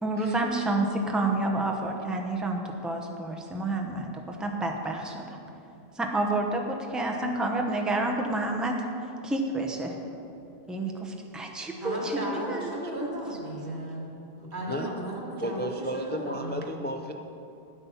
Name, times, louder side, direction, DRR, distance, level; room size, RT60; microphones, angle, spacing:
voice 1, 0.0-5.4 6.0-8.8 9.2-9.9 10.7-13.2, right 2 dB, ahead, 2 dB, 0.8 m, -29 dB
voice 2, 11.7-14.1 14.4-16.6, right 1 dB, 85° right, -3 dB, 2.5 m, -35 dB
voice 3, 15.4-17.1, equal, 15° left, 4 dB, 0.3 m, -33 dB
10.0 x 8.3 x 5.7 m, 2.7 s
omnidirectional pair, 1.1 m